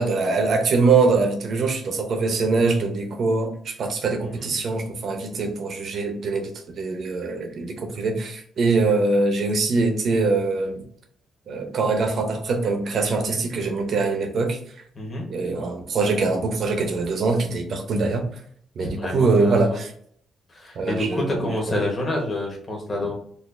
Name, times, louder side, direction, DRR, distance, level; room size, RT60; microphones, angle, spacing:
voice 1, 0.0-6.5 6.8-10.8 11.5-14.6 15.3-18.3 18.8-19.9 20.8-21.5, right 3 dB, 45° right, 5 dB, 0.7 m, -23 dB
voice 2, 4.2-4.5 14.9-15.3 18.8-19.8 20.5-23.1, left 1 dB, 25° left, -1 dB, 1.2 m, -28 dB
4.1 x 2.5 x 2.6 m, 0.63 s
cardioid pair, 165°, 0 cm